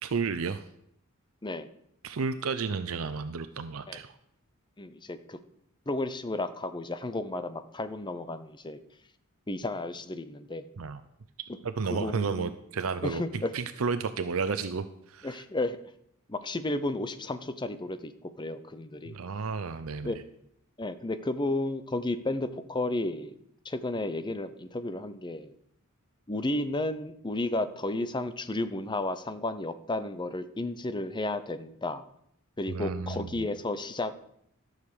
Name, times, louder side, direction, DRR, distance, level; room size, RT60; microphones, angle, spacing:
voice 1, 0.0-0.6 2.0-4.2 10.8-11.0 11.6-15.4 19.1-20.2 32.7-33.5, right 5 dB, 70° right, 10 dB, 0.6 m, -32 dB
voice 2, 4.8-5.4 5.9-8.8 9.5-10.6 11.9-12.5 13.0-13.5 15.2-15.8 16.3-19.1 20.0-20.2 20.8-23.3 23.6-25.5 26.3-32.0 32.6-34.1, left 2 dB, 20° left, 11 dB, 0.7 m, -32 dB
13.0 x 6.6 x 6.8 m, 0.73 s
head